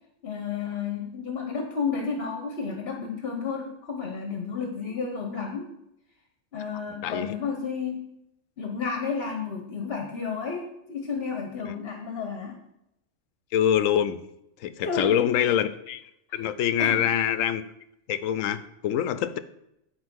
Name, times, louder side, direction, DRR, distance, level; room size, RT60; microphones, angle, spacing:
voice 1, 0.2-5.7 6.5-8.1 8.6-12.6 14.8-15.4 16.3-16.4 16.8-17.0, left 5 dB, 50° left, 4 dB, 1.2 m, -32 dB
voice 2, 7.0-7.3 11.7-11.8 13.5-14.2 14.6-16.0 16.3-17.6 18.1-19.4, left 10 dB, 85° left, 13 dB, 1.0 m, -25 dB
9.4 x 4.3 x 6.1 m, 0.81 s
omnidirectional pair, 1.3 m